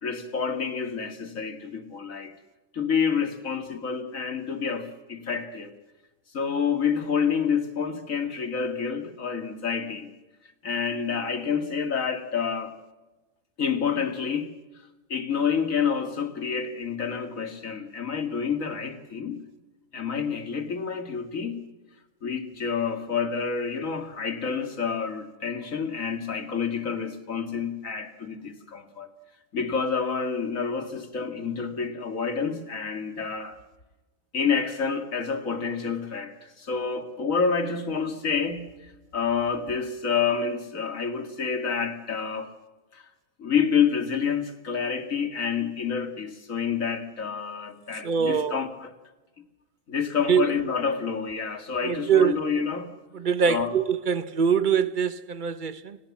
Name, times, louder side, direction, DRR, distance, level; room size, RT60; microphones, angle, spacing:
voice 1, 0.0-2.3 2.7-5.7 6.3-10.1 10.6-12.7 13.6-14.5 15.1-19.4 19.9-21.6 22.2-29.1 29.5-33.6 34.3-42.5 42.9-43.0 43.4-48.9 49.9-52.9 53.5-53.8, left 6 dB, 75° left, 2.6 m, -28 dB
voice 2, 48.0-48.6 50.3-50.5 51.8-52.4 53.1-56.0, right 7 dB, 40° right, 1.1 m, -23 dB
29.5 x 19.0 x 7.5 m
omnidirectional pair, 1.4 m